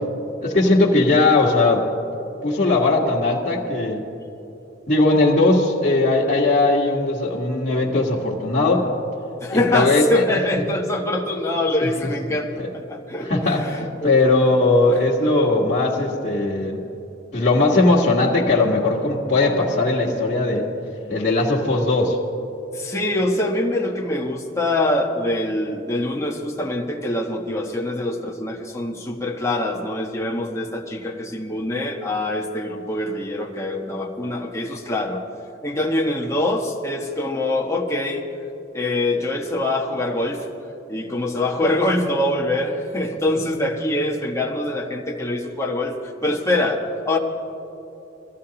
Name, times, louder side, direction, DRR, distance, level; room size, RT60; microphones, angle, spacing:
voice 1, 0.4-1.8 2.4-4.0 4.9-8.9 9.5-10.0 13.3-16.8 17.3-20.7 21.1-22.2, left 2 dB, 45° left, -8 dB, 1.6 m, -19 dB
voice 2, 9.4-14.6 22.7-35.2 35.6-38.2 38.7-40.5 40.9-47.2, left 1 dB, 15° left, 0 dB, 1.3 m, -24 dB
22.5 x 14.5 x 2.9 m, 3.0 s
head